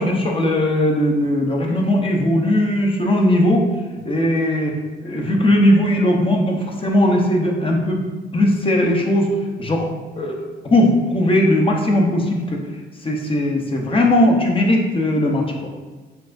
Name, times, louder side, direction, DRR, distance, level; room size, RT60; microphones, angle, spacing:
voice 1, 0.0-3.7 4.0-4.7 5.0-8.0 8.3-9.3 9.6-9.9 10.2-10.4 10.7-12.6 13.0-15.7, left 1 dB, 25° left, 1 dB, 0.7 m, -18 dB
4.4 x 3.6 x 2.5 m, 1.3 s
cardioid pair, 90°, 20 cm